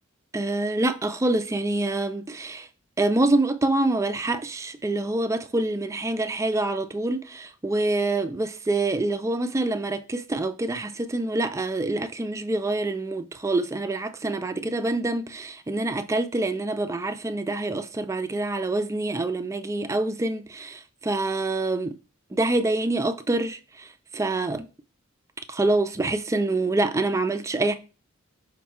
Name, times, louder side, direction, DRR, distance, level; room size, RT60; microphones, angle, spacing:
voice 1, 0.3-2.7 3.0-22.0 22.3-24.7 25.5-27.7, right 2 dB, 15° right, 0.3 m, -26 dB
5.4 x 2.2 x 4.2 m
head